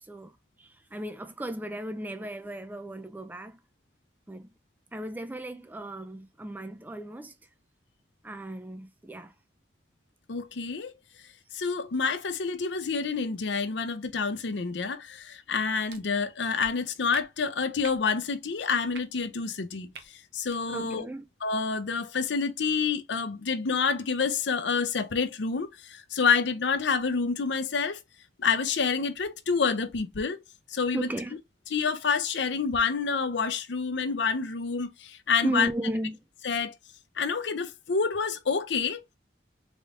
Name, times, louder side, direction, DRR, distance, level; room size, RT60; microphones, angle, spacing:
voice 1, 0.0-3.6 4.3-4.5 4.9-7.3 8.2-9.3 20.7-21.3 30.9-31.4 35.4-36.2, right 1 dB, 10° right, 0.3 m, -35 dB
voice 2, 10.3-10.9 11.5-19.9 20.3-21.0 21.4-28.0 28.4-30.4 30.7-31.1 31.7-35.7 36.4-36.7 37.2-39.0, left 5 dB, 75° left, 0.6 m, -28 dB
sound 1, 15.9-16.0 16.6-16.7 17.1-17.2 17.8-18.0 18.9-19.0 19.9-20.1 20.4-20.6, right 5 dB, 65° right, 0.7 m, -44 dB
4.0 x 3.5 x 2.4 m
head